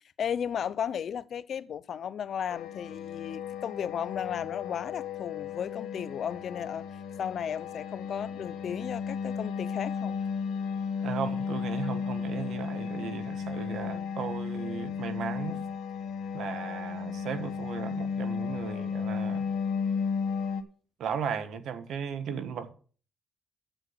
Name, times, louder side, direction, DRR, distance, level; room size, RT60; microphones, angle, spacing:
voice 1, 0.2-6.9 7.2-10.2 13.7-14.2, left 8 dB, 60° left, 0.6 m, -35 dB
sound 1, 2.5-20.6, left 6 dB, 80° left, 1.1 m, -34 dB
voice 2, 11.0-15.6 16.3-19.4 21.0-22.7, right 7 dB, 75° right, 1.3 m, -36 dB
9.0 x 7.6 x 5.6 m
cardioid pair, 90°, 0 cm